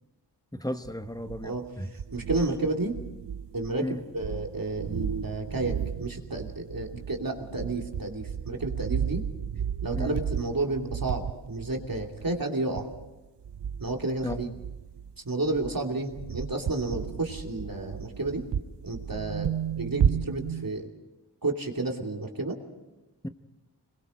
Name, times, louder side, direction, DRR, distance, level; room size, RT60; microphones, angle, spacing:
voice 1, 0.5-1.9 3.8-4.0 9.9-10.2 14.2-14.4 23.2-23.3, left 1 dB, 10° left, 9 dB, 1.2 m, -34 dB
sound 1, 0.8-1.7 2.0-3.9 4.1-15.2 15.4-20.7, right 8 dB, 75° right, 0.7 m, -33 dB
voice 2, 1.9-3.0 3.5-9.2 9.8-12.9 13.8-14.5 15.2-18.5 18.8-19.5 19.8-20.9 21.4-22.6, right 2 dB, 50° right, 2 dB, 2.8 m, -31 dB
26.5 x 21.0 x 5.1 m, 1.1 s
wide cardioid pair, 60°, 42 cm